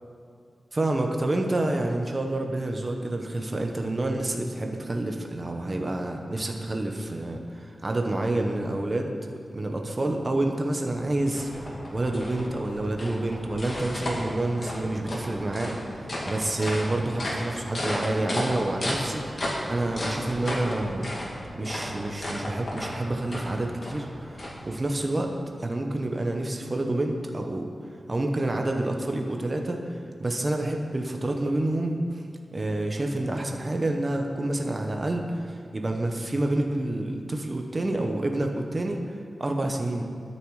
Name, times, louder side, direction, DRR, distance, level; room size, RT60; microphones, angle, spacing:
voice 1, 0.7-9.1 9.5-21.3 21.5-24.4 24.7-25.3 25.6-27.7 28.1-32.2 32.5-40.0, right 2 dB, 25° right, 3 dB, 1.0 m, -28 dB
sound 1, 10.6-25.0, left 1 dB, 35° left, 2.6 m, -34 dB
21.0 x 7.2 x 4.8 m, 2.4 s
wide cardioid pair, 155°, 0 cm